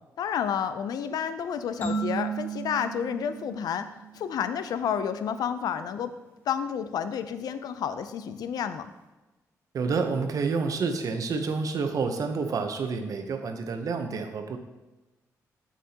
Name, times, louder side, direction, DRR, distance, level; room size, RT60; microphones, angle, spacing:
voice 1, 0.2-3.9 4.1-6.1 6.5-8.9, left 8 dB, 80° left, 11 dB, 0.4 m, -30 dB
sound 1, 1.8-4.5, right 5 dB, 30° left, 2.2 m, -34 dB
voice 2, 9.7-14.6, right 4 dB, 60° right, 6 dB, 0.8 m, -29 dB
7.5 x 6.4 x 2.8 m, 1.1 s
cardioid pair, 70°, 7 cm